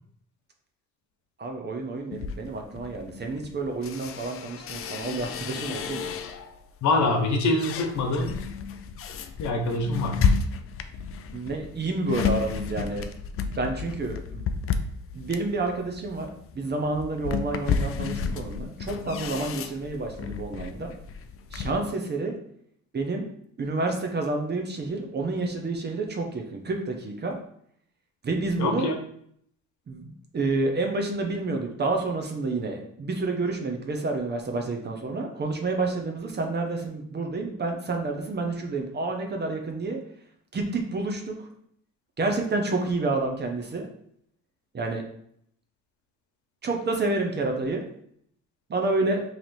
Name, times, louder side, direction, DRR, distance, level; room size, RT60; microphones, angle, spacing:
voice 1, 1.4-6.1 11.3-13.1 13.5-14.4 15.1-16.3 16.5-20.9 21.5-22.3 22.9-23.2 23.6-27.4 28.2-28.9 29.9-40.0 40.5-41.5 42.2-43.9 44.7-45.0 46.6-47.8 48.7-49.2, right 3 dB, 35° right, 3 dB, 0.8 m, -29 dB
sound 1, 2.1-6.6 7.1-21.8, left 6 dB, 50° left, 0.4 m, -32 dB
voice 2, 6.8-8.3 9.4-10.2 28.6-28.9, left 2 dB, 70° left, 3 dB, 0.9 m, -24 dB
3.2 x 2.8 x 4.0 m, 0.68 s
cardioid pair, 90°, 30 cm